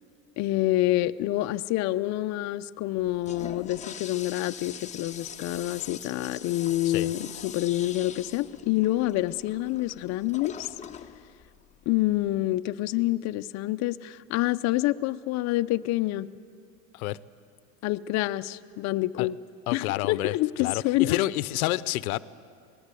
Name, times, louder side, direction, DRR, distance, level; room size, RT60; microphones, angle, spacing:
voice 1, 0.4-10.7 11.9-16.3 17.8-19.4 19.7-21.2, left 16 dB, 40° left, 0.5 m, -27 dB
Toilet flush, 3.0-12.4, left 7 dB, 15° left, 0.8 m, -43 dB
voice 2, 19.7-20.3 20.6-22.2, left 17 dB, 85° left, 0.7 m, -28 dB
26.5 x 19.0 x 8.3 m
supercardioid pair, 125°, 42 cm